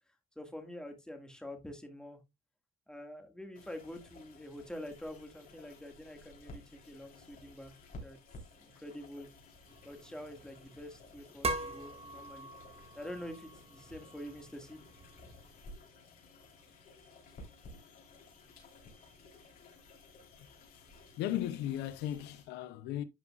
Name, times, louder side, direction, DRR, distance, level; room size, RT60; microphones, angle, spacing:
voice 1, 0.4-2.2 2.9-7.7 8.0-8.2 8.6-9.3 9.8-12.5 13.0-14.8, left 1 dB, 5° left, 1.9 m, -46 dB
sound 1, 3.5-22.4, left 2 dB, 55° left, 3.6 m, -55 dB
sound 2, 9.7-15.5, right 2 dB, 35° right, 1.7 m, -43 dB
voice 2, 21.2-23.0, left 12 dB, 85° left, 0.7 m, -36 dB
11.0 x 5.5 x 2.4 m
cardioid pair, 110°, 17 cm